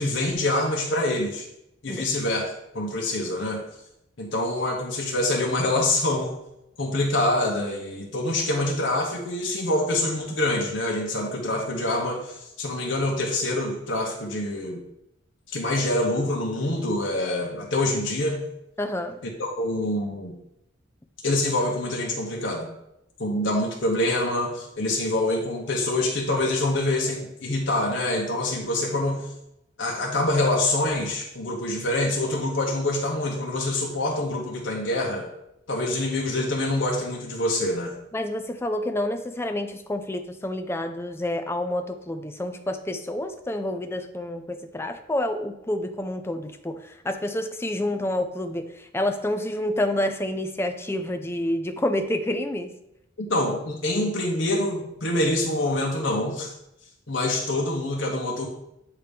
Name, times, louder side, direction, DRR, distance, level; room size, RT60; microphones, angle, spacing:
voice 1, 0.0-1.5 1.8-3.6 4.2-6.3 6.8-14.8 15.5-18.4 19.4-20.4 21.2-22.7 23.2-29.3 29.8-35.3 35.7-37.9 53.2-56.5 57.1-58.5, left 1 dB, 65° left, -1 dB, 1.1 m, -25 dB
voice 2, 18.8-19.2 38.1-52.7, left 1 dB, 15° left, 7 dB, 0.4 m, -28 dB
8.4 x 2.9 x 5.1 m, 0.82 s
head